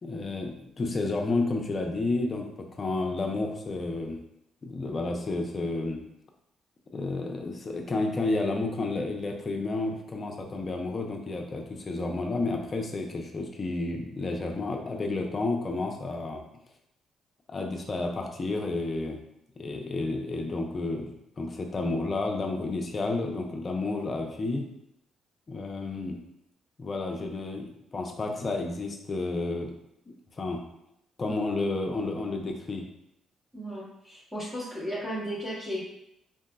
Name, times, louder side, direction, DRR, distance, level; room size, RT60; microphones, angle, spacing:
voice 1, 0.0-4.2 4.6-6.0 6.9-16.4 17.5-19.2 19.6-24.7 25.5-26.2 26.8-29.7 30.1-30.6 31.2-32.9, left 2 dB, 35° left, 2 dB, 0.5 m, -31 dB
voice 2, 33.5-35.8, equal, 15° right, -6 dB, 1.1 m, -35 dB
3.9 x 2.6 x 2.3 m, 0.79 s
cardioid pair, 90°, 0 cm